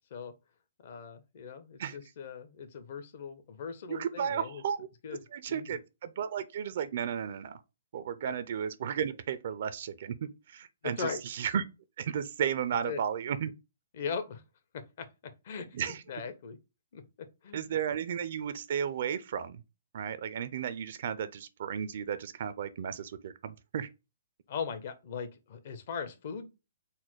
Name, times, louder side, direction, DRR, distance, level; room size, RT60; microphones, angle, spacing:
voice 1, 0.8-4.6 5.0-5.2 5.5-5.8 8.3-8.4 10.8-11.2 12.8-13.0 13.9-14.4 14.7-15.1 15.4-16.6 16.9-17.6 24.5-26.4, left 6 dB, 50° left, 0.8 m, -39 dB
voice 2, 3.9-4.9 5.3-7.6 7.9-11.6 12.0-13.5 15.7-16.0 17.5-19.6 19.9-23.9, right 8 dB, 55° right, 0.4 m, -34 dB
4.1 x 2.1 x 4.5 m
hypercardioid pair, 150°, 0 cm